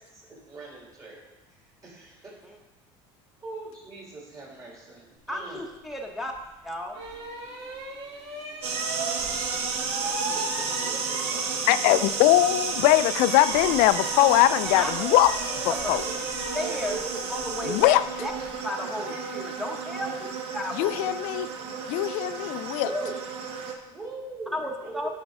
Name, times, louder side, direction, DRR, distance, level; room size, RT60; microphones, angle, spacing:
voice 1, 0.1-1.2 1.8-2.4 3.4-5.6 9.2-9.6 10.0-12.2 16.0-16.3 16.8-17.2 19.1-19.2 23.6-25.1, right 2 dB, 30° right, -4 dB, 2.8 m, -42 dB
voice 2, 5.3-6.3 6.6-7.0 14.7-14.9 15.7-15.9 16.5-16.9 17.3-18.3 18.6-20.3 20.5-21.1 22.8-23.1 24.5-25.1, left 1 dB, ahead, 1 dB, 0.9 m, -33 dB
sound 1, 6.3-6.4 6.9-12.1 12.3-18.5, right 2 dB, 70° right, 2.9 m, -37 dB
sound 2, 8.6-23.7, right 5 dB, 50° right, 1.1 m, -32 dB
voice 3, 11.7-15.3 15.9-16.0 17.6-18.0 20.8-21.5 21.9-22.9, left 15 dB, 70° left, 15 dB, 0.4 m, -21 dB
11.0 x 5.2 x 3.6 m, 1.1 s
cardioid pair, 130°, 13 cm